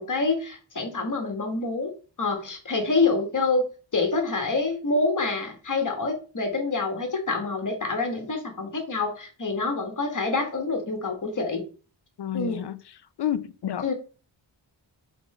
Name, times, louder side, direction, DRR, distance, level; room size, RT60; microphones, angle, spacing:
voice 1, 0.0-1.9 2.2-11.6 12.3-12.6 13.8-13.9, left 3 dB, 40° left, 1.5 m, -27 dB
voice 2, 12.2-12.8 13.2-13.9, left 10 dB, 60° left, 0.5 m, -30 dB
4.5 x 4.0 x 5.4 m
wide cardioid pair, 135°, 46 cm